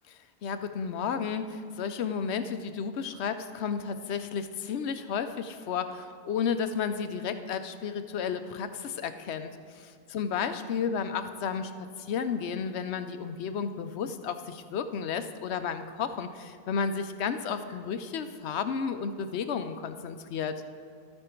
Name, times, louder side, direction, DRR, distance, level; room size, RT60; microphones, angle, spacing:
voice 1, 0.4-9.6 9.8-11.7 12.1-20.5, left 6 dB, 80° left, 10 dB, 0.9 m, -32 dB
13.0 x 8.8 x 4.4 m, 2.2 s
omnidirectional pair, 1.1 m